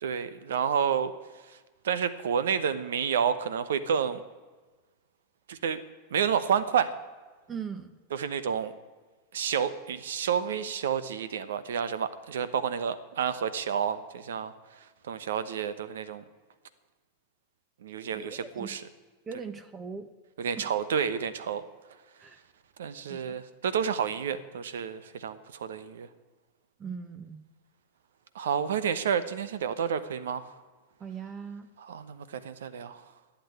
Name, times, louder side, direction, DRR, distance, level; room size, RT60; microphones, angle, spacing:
voice 1, 0.0-1.1 1.8-4.2 5.5-5.8 6.1-6.9 8.1-8.7 9.3-14.5 15.1-16.2 17.8-18.8 20.4-21.6 22.8-26.1 28.3-30.5 31.8-33.0, right 7 dB, 75° right, 14 dB, 1.0 m, -30 dB
voice 2, 7.5-7.9 18.1-18.7 19.3-20.1 20.6-20.7 22.2-22.4 22.9-23.4 26.8-27.4 31.0-31.7, right 6 dB, 25° right, 11 dB, 1.1 m, -40 dB
12.0 x 8.5 x 9.4 m, 1.3 s
hypercardioid pair, 95°, 0 cm